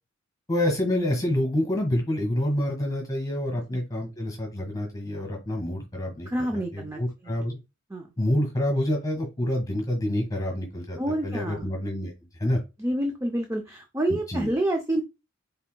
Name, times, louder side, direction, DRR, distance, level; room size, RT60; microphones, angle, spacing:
voice 1, 0.5-7.6 8.2-11.0 11.2-12.1 12.4-12.6 14.1-14.5, left 1 dB, 20° left, 3 dB, 1.4 m, -27 dB
voice 2, 6.3-7.4 7.9-8.1 11.0-11.7 12.8-15.0, right 1 dB, 15° right, 3 dB, 0.5 m, -28 dB
5.6 x 3.4 x 2.2 m, 0.25 s
head